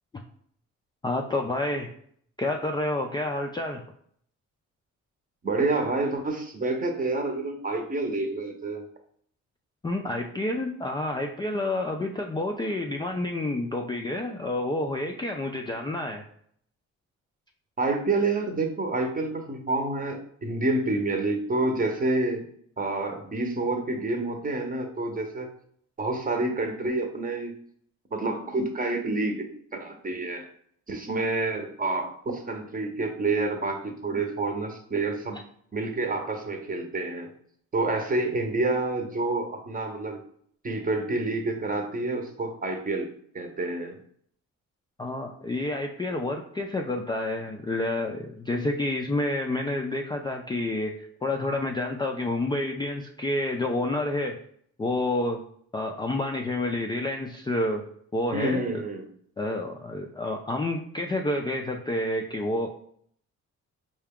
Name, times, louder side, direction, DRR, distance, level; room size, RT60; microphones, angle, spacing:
voice 1, 1.0-1.9 2.4-3.8 9.8-16.2 45.0-54.4 54.8-55.4 55.7-57.8 58.1-58.8 59.4-62.7, left 2 dB, 15° left, 1 dB, 0.3 m, -29 dB
voice 2, 5.4-8.8 17.8-22.4 22.8-25.5 26.0-27.5 28.1-30.5 30.9-35.4 35.7-37.3 37.7-40.2 40.6-43.1 43.3-44.0 58.3-59.1, right 2 dB, 30° right, 4 dB, 0.8 m, -28 dB
4.6 x 2.3 x 3.5 m, 0.64 s
cardioid pair, 90°, 30 cm